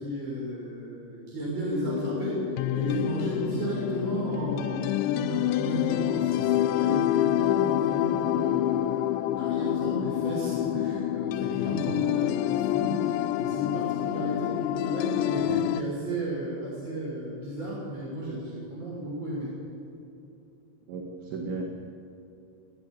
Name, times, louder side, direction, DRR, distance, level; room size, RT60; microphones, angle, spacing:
voice 1, 0.0-19.5, right 1 dB, 25° right, -6 dB, 7.2 m, -34 dB
sound 1, 1.8-15.8, left 13 dB, 80° left, 2.8 m, -27 dB
voice 2, 20.9-21.7, right 3 dB, 70° right, 1 dB, 4.2 m, -34 dB
20.5 x 18.5 x 9.1 m, 2.9 s
omnidirectional pair, 5.6 m